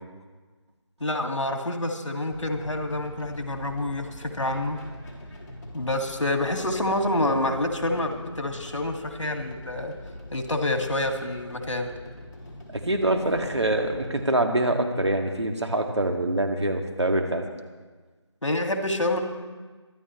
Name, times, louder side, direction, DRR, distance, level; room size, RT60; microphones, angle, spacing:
voice 1, 1.0-4.8 5.7-9.9 10.3-11.9 18.4-19.2, left 1 dB, 80° left, 4 dB, 2.1 m, -27 dB
sound 1, 2.3-14.3, left 1 dB, 40° left, 4.3 m, -43 dB
voice 2, 12.7-17.4, right 1 dB, 65° right, 4 dB, 2.0 m, -25 dB
24.0 x 12.5 x 3.2 m, 1.4 s
figure-of-eight pair, 175°, 15 cm